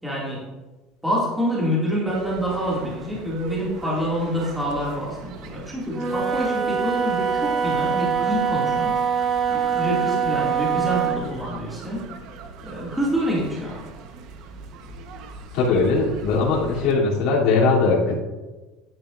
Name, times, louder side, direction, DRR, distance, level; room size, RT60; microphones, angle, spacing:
voice 1, 0.0-0.5 1.0-9.0 9.5-12.1 12.6-13.8, equal, 5° right, -6 dB, 2.2 m, -27 dB
sound 1, 2.1-16.9, right 5 dB, 60° right, 1.0 m, -40 dB
Wind instrument woodwind instrument, 5.9-11.3, right 6 dB, 25° right, 1.1 m, -23 dB
voice 2, 15.5-18.2, left 4 dB, 65° left, -8 dB, 2.9 m, -20 dB
10.5 x 8.7 x 2.5 m, 1.2 s
cardioid pair, 135°, 0 cm